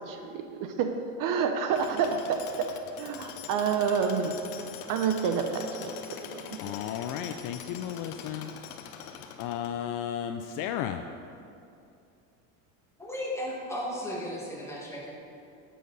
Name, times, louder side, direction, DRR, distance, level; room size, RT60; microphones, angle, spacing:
voice 1, 0.1-0.9 1.2-2.4 3.0-4.4 4.9-5.9 6.3-6.6, right 6 dB, 50° right, 6 dB, 0.7 m, -28 dB
Tools, 1.7-10.0, left 8 dB, 85° left, 0.9 m, -43 dB
voice 2, 6.6-8.5 9.0-11.0, left 10 dB, 50° left, 7 dB, 0.4 m, -34 dB
voice 3, 13.0-15.1, left 1 dB, 5° left, -4 dB, 1.8 m, -35 dB
9.0 x 7.6 x 4.1 m, 2.6 s
supercardioid pair, 120°, 43 cm